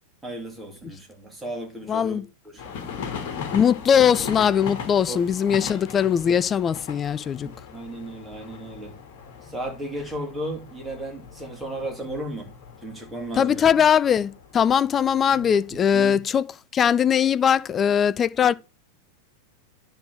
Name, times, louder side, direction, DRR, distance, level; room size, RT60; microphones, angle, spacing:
voice 1, 0.2-2.2 2.5-2.8 5.1-5.2 5.6-5.7 7.4-9.0 9.5-12.5 12.8-13.6 15.3-16.2, right 1 dB, 10° right, 3.0 m, -35 dB
voice 2, 1.9-2.3 3.5-7.5 13.3-18.5, left 8 dB, 25° left, 0.4 m, -21 dB
sound 1, 2.6-16.0, left 6 dB, 50° left, 1.8 m, -39 dB
10.5 x 3.9 x 6.4 m
figure-of-eight pair, 90°, 0 cm